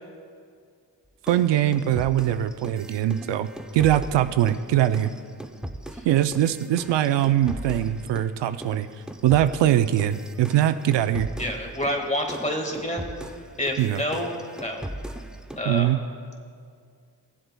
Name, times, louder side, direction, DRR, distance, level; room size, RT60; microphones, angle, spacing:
voice 1, 1.2-3.5 3.7-5.1 6.1-8.9 9.2-11.3 13.8-14.0 15.7-16.0, right 12 dB, 75° right, 10 dB, 0.5 m, -22 dB
sound 1, 1.3-8.3 8.6-15.7, right 1 dB, ahead, 0.5 m, -39 dB
voice 2, 11.4-13.1 13.6-14.8 15.5-15.9, left 1 dB, 15° left, 3 dB, 1.7 m, -28 dB
20.5 x 7.8 x 2.2 m, 2.2 s
cardioid pair, 70°, 44 cm